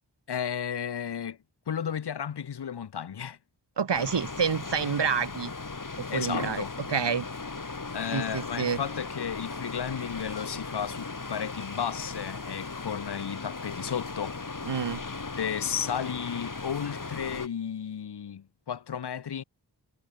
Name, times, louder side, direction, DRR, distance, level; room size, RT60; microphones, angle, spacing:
voice 1, 0.3-1.4 1.7-3.4 6.1-6.8 7.9-14.4 15.4-19.4, left 8 dB, 70° left, 1.1 m, -33 dB
voice 2, 3.8-5.5 6.0-7.3 8.1-8.8 14.7-15.0, right 6 dB, 80° right, 2.6 m, -28 dB
sound 1, 3.9-17.5, left 3 dB, 50° left, 4.5 m, -37 dB
cardioid pair, 50°, 41 cm